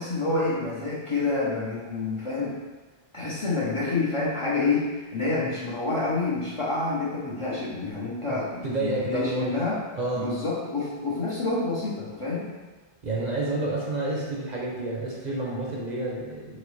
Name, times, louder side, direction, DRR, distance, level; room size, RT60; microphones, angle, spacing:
voice 1, 0.0-2.6 3.1-9.8 10.1-12.5, left 3 dB, 35° left, -7 dB, 0.6 m, -28 dB
voice 2, 8.6-9.6 10.0-10.3 13.0-16.6, right 2 dB, 50° right, -3 dB, 0.7 m, -29 dB
4.0 x 2.9 x 3.1 m, 1.3 s
omnidirectional pair, 1.1 m